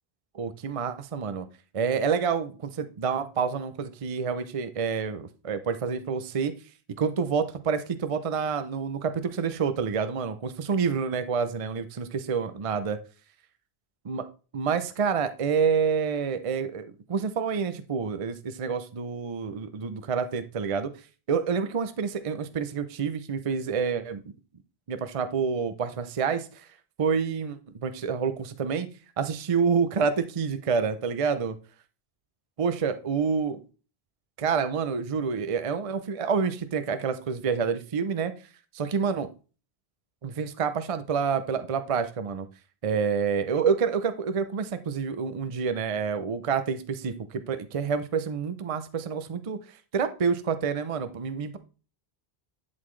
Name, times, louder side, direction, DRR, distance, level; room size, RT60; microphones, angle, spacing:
voice 1, 0.3-1.5 1.7-6.5 7.0-13.0 14.1-14.3 14.5-20.9 21.3-24.2 24.9-26.7 27.0-28.9 29.2-31.6 32.6-33.6 34.4-38.3 38.7-39.3 40.2-42.5 42.8-51.6, right 6 dB, 40° right, 11 dB, 0.6 m, -28 dB
11.0 x 4.1 x 3.2 m, 0.35 s
omnidirectional pair, 1.1 m